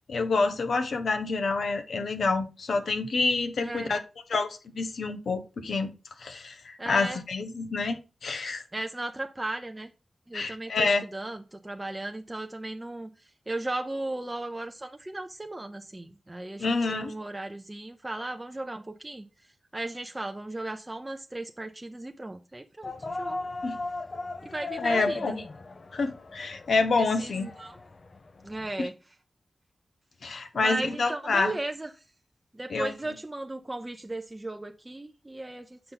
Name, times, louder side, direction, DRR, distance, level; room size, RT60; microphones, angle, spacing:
voice 1, 0.1-4.0 4.3-5.9 6.2-8.6 10.3-11.0 16.6-17.1 23.6-23.8 24.8-25.4 25.9-27.5 28.8-28.9 30.2-31.5 32.7-32.9, left 3 dB, 85° left, 0.8 m, -27 dB
voice 2, 3.6-3.9 6.8-7.2 8.7-9.9 10.3-13.1 13.5-19.3 19.7-22.9 23.2-23.5 24.4-25.4 27.0-27.8 28.4-28.9 30.5-31.9 32.5-35.8, right 2 dB, 20° right, 0.6 m, -36 dB
sound 1, 22.8-28.7, left 2 dB, 55° left, 0.5 m, -37 dB
6.6 x 5.7 x 3.9 m
wide cardioid pair, 70°, 0 cm